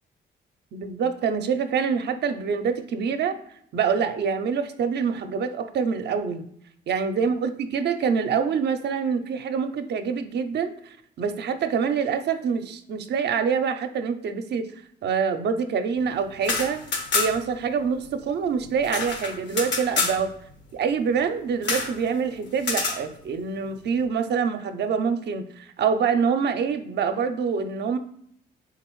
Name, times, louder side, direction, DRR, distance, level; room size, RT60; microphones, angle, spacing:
voice 1, 0.7-3.4 3.7-6.5 6.9-14.7 15.0-16.8 17.1-20.3 20.7-28.0, right 6 dB, 60° right, 8 dB, 0.5 m, -25 dB
sound 1, 16.3-17.6 17.8-17.9 18.2-20.2 21.6-21.9 22.6-23.0, left 4 dB, 70° left, 1.0 m, -27 dB
3.9 x 3.7 x 3.1 m, 0.69 s
supercardioid pair, 70°, 19 cm